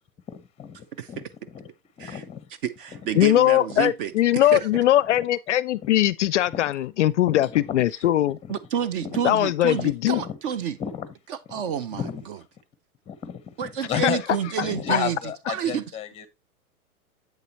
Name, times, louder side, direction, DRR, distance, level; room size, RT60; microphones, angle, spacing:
voice 1, 0.3-1.7 2.0-2.5 2.9-3.3 4.7-4.8 5.1-5.2 6.5-6.7 7.3-7.9 8.4-8.5 9.0-9.2 9.7-10.4 10.8-11.1 11.5-11.6 12.0-12.2 13.1-14.2 14.6-16.3, left 8 dB, 15° left, 0.8 m, -34 dB
voice 2, 2.6-4.7 8.5-10.8 11.5-12.0 12.3-12.4 13.6-15.2 15.5-15.8, right 8 dB, 40° right, 0.6 m, -29 dB
voice 3, 3.2-8.4 9.2-10.2 14.0-14.1 14.9-15.0, left 13 dB, 55° left, 0.5 m, -21 dB
8.0 x 6.7 x 2.9 m
hypercardioid pair, 120°, 44 cm